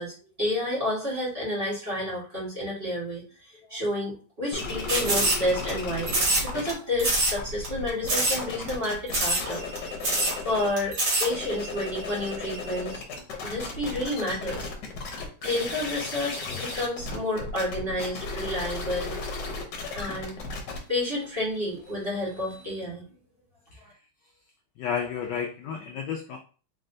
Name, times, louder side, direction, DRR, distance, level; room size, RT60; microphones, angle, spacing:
voice 1, 0.0-3.2 3.7-6.1 6.4-9.6 10.4-13.0 13.4-14.7 15.4-19.2 19.9-20.3 20.9-23.1, left 1 dB, 30° right, -7 dB, 1.6 m, -30 dB
sound 1, 4.5-6.7 7.0-10.8 11.2-22.7, left 3 dB, 60° left, 1.4 m, -35 dB
sound 2, 4.9-5.7 6.1-6.7 7.0-7.4 7.6-7.7 8.1-8.4 8.7-8.8 9.1-9.5 9.8-9.9 10.0-10.4 10.8-11.3, right 2 dB, 75° right, 2.4 m, -24 dB
voice 2, 24.8-26.4, left 7 dB, 80° left, 3 dB, 0.9 m, -31 dB
4.3 x 3.1 x 2.6 m, 0.38 s
omnidirectional pair, 2.4 m